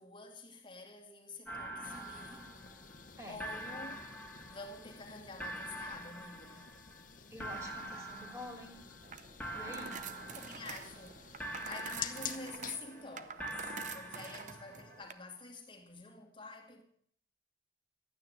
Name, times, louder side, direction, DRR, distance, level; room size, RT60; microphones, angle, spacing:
voice 1, 0.0-2.5 3.3-4.0 4.5-6.7 9.7-16.8, left 3 dB, 30° left, 2.2 m, -48 dB
sound 1, 1.4-3.1 3.4-5.0 5.4-7.0 7.4-9.1 9.4-11.1 11.4-13.0 13.4-15.0, right 1 dB, 10° left, 2.3 m, -45 dB
sound 2, 1.8-12.8, left 8 dB, 50° left, 0.9 m, -50 dB
voice 2, 7.3-8.8 9.5-10.0 14.1-14.4, left 1 dB, 15° right, 3.3 m, -48 dB
sound 3, 9.0-15.1, right 6 dB, 45° right, 0.7 m, -48 dB
12.5 x 9.5 x 7.8 m
head